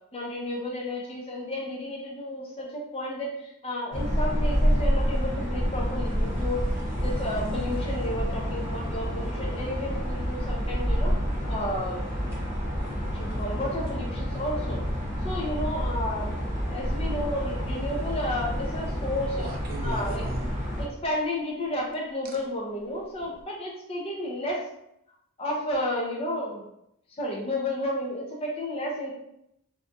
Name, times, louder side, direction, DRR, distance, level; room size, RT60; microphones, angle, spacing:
voice 1, 0.1-6.6 7.0-11.2 11.5-12.0 13.1-14.8 15.2-16.3 16.6-19.5 19.8-20.2 20.8-24.6 25.4-26.7 27.1-29.1, left 1 dB, 25° left, -2 dB, 0.5 m, -32 dB
sound 1, 3.9-20.8, equal, 10° right, 0.9 m, -28 dB
sound 2, 19.4-21.1 22.3-22.4 23.2-23.4, equal, 40° right, 0.3 m, -38 dB
2.6 x 2.2 x 2.6 m, 0.80 s
head